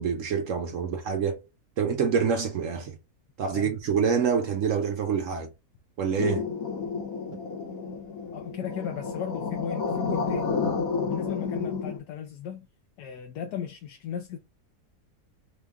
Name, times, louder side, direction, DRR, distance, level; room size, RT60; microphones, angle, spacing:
voice 1, 0.0-1.4 1.8-2.9 3.4-5.5 6.0-6.4, right 6 dB, 65° right, 0.8 m, -26 dB
sound 1, 6.2-12.0, left 5 dB, 60° left, 1.4 m, -30 dB
voice 2, 8.3-10.5 11.1-12.7 13.0-14.4, left 9 dB, 80° left, 1.2 m, -36 dB
4.5 x 2.3 x 3.4 m
omnidirectional pair, 1.8 m